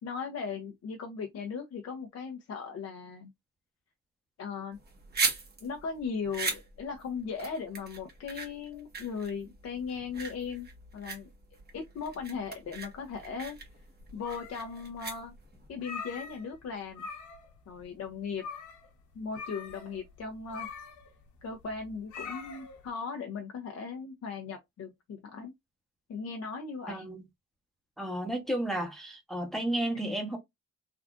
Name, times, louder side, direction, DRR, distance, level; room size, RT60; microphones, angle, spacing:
voice 1, 0.0-3.3 4.4-4.8 5.6-10.7 10.9-11.3 11.7-13.6 14.1-15.3 15.7-17.1 17.7-18.5 19.1-20.7 21.4-25.5 26.1-27.1 29.9-30.1, left 5 dB, 60° left, 0.7 m, -38 dB
sound 1, 4.7-15.7, right 4 dB, 35° right, 1.3 m, -38 dB
sound 2, 14.0-14.9 15.2-15.3 15.7-16.6 16.9-17.5 17.8-17.9 18.4-18.9 19.3-22.9, left 5 dB, 85° left, 1.1 m, -43 dB
voice 2, 28.0-30.4, right 1 dB, ahead, 1.0 m, -32 dB
3.5 x 2.4 x 2.4 m
cardioid pair, 115°, 29 cm